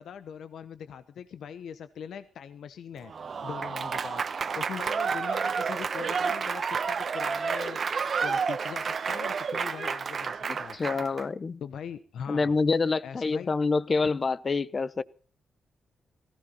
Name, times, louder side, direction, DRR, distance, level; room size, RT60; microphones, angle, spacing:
voice 1, 0.0-3.1 3.4-7.8 8.2-10.8 11.6-12.6 13.0-13.5, left 8 dB, 80° left, 0.9 m, -41 dB
Applause / Crowd, 3.1-11.2, right 5 dB, 55° right, 1.0 m, -30 dB
voice 2, 10.5-11.6 12.3-15.0, left 4 dB, 40° left, 0.8 m, -27 dB
18.0 x 15.5 x 4.2 m
cardioid pair, 75°, 0 cm